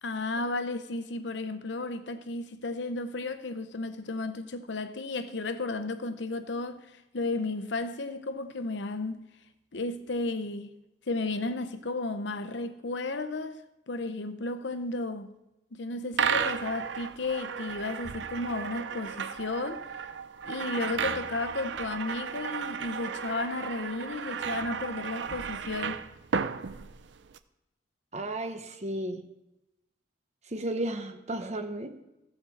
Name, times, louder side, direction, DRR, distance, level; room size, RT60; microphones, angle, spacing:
voice 1, 0.0-6.9 7.1-9.2 9.7-10.7 11.1-13.6 13.9-15.3 15.7-19.9 20.4-26.0, left 2 dB, 70° left, 0.8 m, -33 dB
sound 1, 16.1-27.4, right 6 dB, 70° right, 0.6 m, -34 dB
voice 2, 28.1-29.2 30.5-32.0, right 1 dB, 35° right, 1.1 m, -34 dB
15.5 x 5.4 x 7.2 m
head